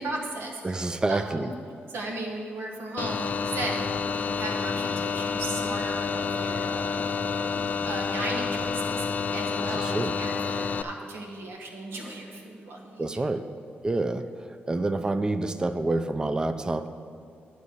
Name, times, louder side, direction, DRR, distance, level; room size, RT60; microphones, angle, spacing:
voice 1, 0.0-1.5 1.9-7.0 7.8-13.1, right 2 dB, 85° right, 0 dB, 1.2 m, -36 dB
voice 2, 0.6-1.5 9.7-10.1 13.0-13.5 13.8-16.9, right 2 dB, 20° right, 10 dB, 0.4 m, -28 dB
sound 1, 3.0-10.8, left 5 dB, 45° left, 0.4 m, -29 dB
11.0 x 4.2 x 7.8 m, 2.4 s
wide cardioid pair, 120°, 4 cm